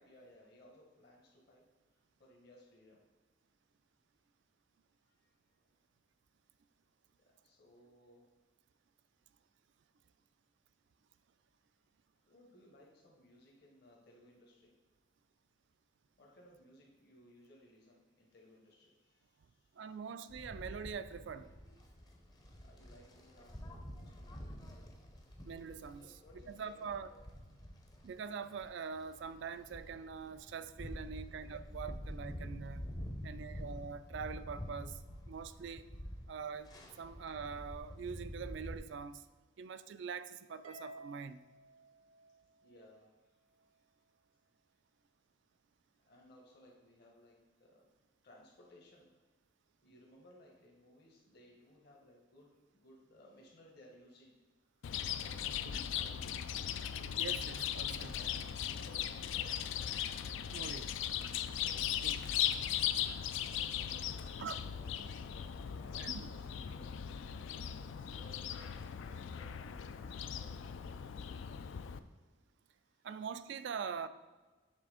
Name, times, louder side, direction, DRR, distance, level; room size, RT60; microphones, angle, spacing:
voice 1, 0.0-1.6 1.9-3.0 5.2-5.3 7.2-8.2 12.2-14.7 16.2-20.0 21.8-22.1 22.6-25.0 25.8-26.9 33.2-33.5 42.6-43.4 46.0-47.9 48.2-49.2 49.8-54.4 54.8-54.9 55.2-56.4 57.8-60.0 60.6-62.5 63.1-67.0 67.6-68.8 69.2-71.3 73.0-73.1, left 1 dB, 50° left, -2 dB, 1.1 m, -61 dB
voice 2, 19.8-21.5 25.4-26.0 26.5-27.1 28.0-32.8 33.2-35.0 35.3-35.9 36.3-36.7 37.0-39.2 39.6-41.4 57.2-58.1 60.5-60.9 62.0-62.2 64.4-64.6 66.0-66.3 73.0-74.1, right 6 dB, 60° right, 12 dB, 0.3 m, -44 dB
sound 1, 20.3-38.8, equal, 20° left, 0.6 m, -48 dB
Harp, 40.6-43.1, right 1 dB, 80° right, 0.7 m, -54 dB
Chirp tweet, 54.8-72.0, left 9 dB, 70° left, 0.3 m, -38 dB
7.2 x 3.4 x 4.9 m, 1.3 s
head